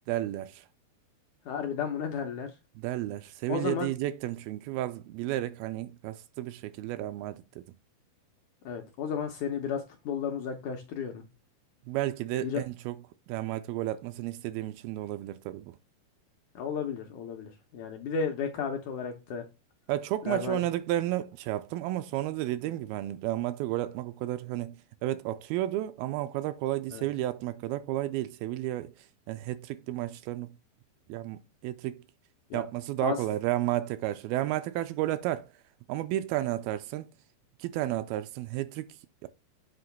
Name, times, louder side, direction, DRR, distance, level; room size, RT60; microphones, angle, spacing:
voice 1, 0.1-0.7 2.8-7.7 11.9-13.0 13.3-15.8 19.9-30.5 31.1-32.0 32.5-35.5 35.9-37.1 37.6-39.3, right 14 dB, 80° right, 2.3 m, -32 dB
voice 2, 1.5-2.5 3.5-3.9 8.7-11.2 12.4-12.6 16.6-19.5 20.3-20.6 26.9-27.1 32.5-32.6 33.0-33.2, left 6 dB, 75° left, 1.9 m, -33 dB
7.9 x 3.0 x 5.8 m
omnidirectional pair, 4.4 m